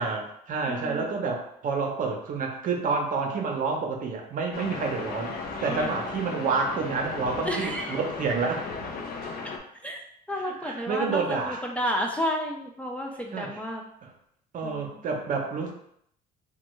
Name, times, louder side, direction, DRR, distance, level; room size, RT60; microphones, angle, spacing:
voice 1, 0.0-5.3 5.6-8.6 10.3-11.6 13.3-13.7 14.0-14.1 14.5-15.7, right 4 dB, 50° right, 2 dB, 0.7 m, -29 dB
voice 2, 0.7-1.1 5.7-6.0 7.4-8.0 9.8-10.0 10.3-13.8 14.6-15.0, equal, 10° left, 0 dB, 0.4 m, -31 dB
sound 1, 4.5-9.6, left 4 dB, 65° left, 0.5 m, -36 dB
3.2 x 2.2 x 3.1 m, 0.71 s
cardioid pair, 110°, 17 cm